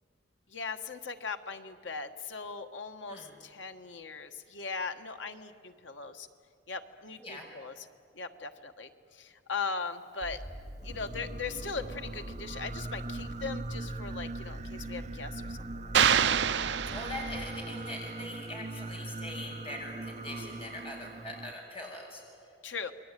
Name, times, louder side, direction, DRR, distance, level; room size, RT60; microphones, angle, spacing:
voice 1, 0.5-6.3 6.7-7.9 8.1-10.4 10.8-16.8 22.6-22.9, left 4 dB, 90° left, 6 dB, 1.5 m, -39 dB
sound 1, 10.2-17.5, right 1 dB, ahead, 3.0 m, -44 dB
Singing, 10.8-21.5, right 2 dB, 40° right, 0.9 m, -41 dB
sound 2, 15.9-17.7, right 8 dB, 70° right, 0.6 m, -26 dB
voice 2, 16.9-22.2, left 1 dB, 30° left, 0 dB, 6.1 m, -42 dB
29.0 x 22.0 x 9.2 m, 2.3 s
head